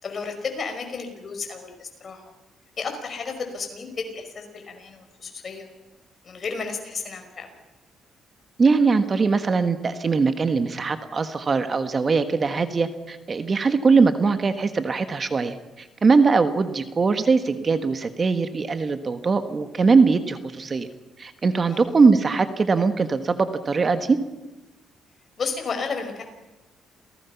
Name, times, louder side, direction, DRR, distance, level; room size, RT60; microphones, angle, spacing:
voice 1, 0.0-2.3 2.8-5.7 6.2-7.5 21.7-21.8 25.4-26.2, left 5 dB, 45° left, 5 dB, 5.4 m, -32 dB
voice 2, 8.6-20.9 21.2-24.2, right 4 dB, 35° right, 9 dB, 1.5 m, -21 dB
28.5 x 18.0 x 5.9 m, 1.1 s
cardioid pair, 90°, 0 cm